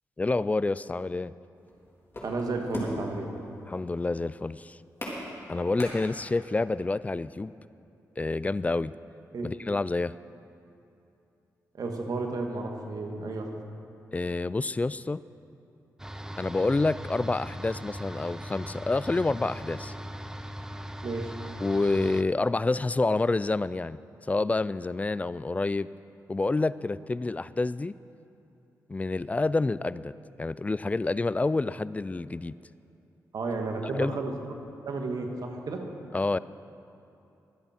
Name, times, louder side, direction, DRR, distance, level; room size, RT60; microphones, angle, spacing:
voice 1, 0.2-1.3 3.7-4.8 5.5-7.5 8.2-8.9 9.4-10.1 14.1-15.2 16.4-19.9 21.6-24.0 24.3-25.9 26.3-27.9 28.9-30.1 30.4-32.5 33.9-34.1 36.1-36.4, left 3 dB, 20° left, 17 dB, 0.3 m, -28 dB
sound 1, 1.6-6.6, left 1 dB, 40° left, 3.6 m, -39 dB
voice 2, 2.2-3.3 9.3-9.5 11.7-13.5 21.0-21.3 33.3-34.4 34.8-35.8, right 3 dB, 70° right, 2 dB, 1.7 m, -32 dB
sound 2, 16.0-22.2, equal, 10° right, 0.7 m, -39 dB
22.0 x 8.2 x 4.5 m, 2.7 s
cardioid pair, 60°, 7 cm